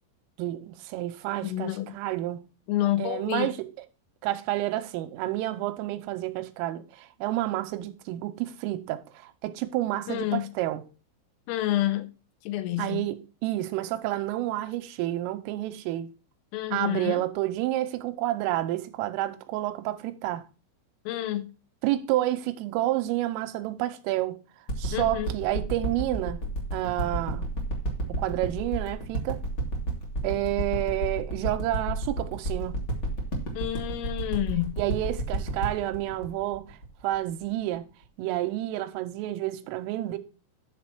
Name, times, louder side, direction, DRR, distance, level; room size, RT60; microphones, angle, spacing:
voice 1, 0.4-2.4 3.0-3.7 4.2-10.8 12.8-16.1 16.7-20.4 21.8-24.4 24.8-26.4 26.7-27.4 28.1-29.4 30.2-32.9 34.8-36.8 37.0-37.9 38.2-40.2, right 15 dB, 90° right, 3.3 m, -29 dB
voice 2, 1.4-1.9 2.7-3.5 10.1-10.5 11.5-12.1 12.5-13.1 16.5-17.2 21.1-21.5 24.9-25.3 33.6-34.7, left 14 dB, 85° left, 3.5 m, -29 dB
sound 1, 24.7-37.4 38.0-38.1, right 1 dB, 45° left, 1.3 m, -31 dB
10.5 x 4.2 x 6.0 m
omnidirectional pair, 5.9 m